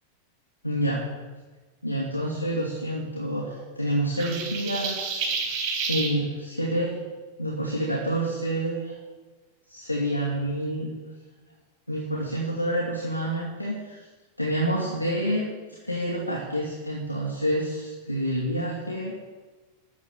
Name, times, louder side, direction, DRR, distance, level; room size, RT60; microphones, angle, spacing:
voice 1, 0.6-1.0 1.8-7.0 7.4-8.9 9.7-10.9 11.9-14.0 14.4-15.5 15.8-19.1, right 1 dB, 85° left, -3 dB, 2.4 m, -28 dB
sound 1, 4.2-6.1, right 5 dB, 40° right, 4.0 m, -29 dB
13.0 x 9.0 x 8.0 m, 1.3 s
figure-of-eight pair, 90°, 0 cm